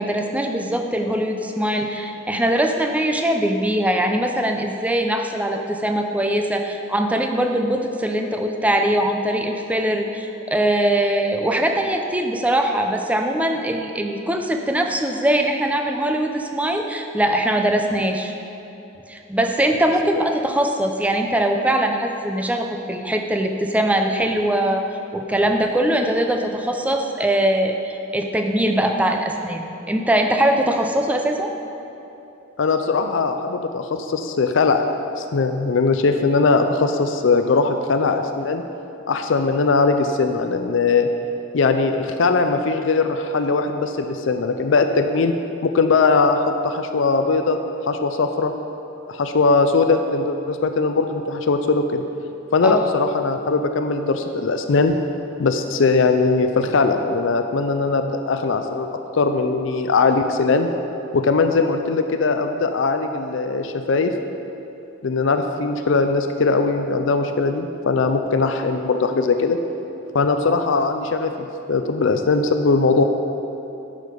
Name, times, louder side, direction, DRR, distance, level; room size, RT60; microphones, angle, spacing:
voice 1, 0.0-18.3 19.1-31.6 52.6-52.9, right 1 dB, 5° right, 4 dB, 0.5 m, -21 dB
voice 2, 32.6-34.8 35.2-38.6 39.1-41.1 41.5-45.3 45.6-47.6 47.9-48.5 49.1-52.0 52.5-54.9 55.4-58.9 59.1-60.7 61.1-64.1 65.0-69.6 70.1-73.0, left 4 dB, 70° left, 6 dB, 0.5 m, -20 dB
10.5 x 6.5 x 5.1 m, 2.9 s
head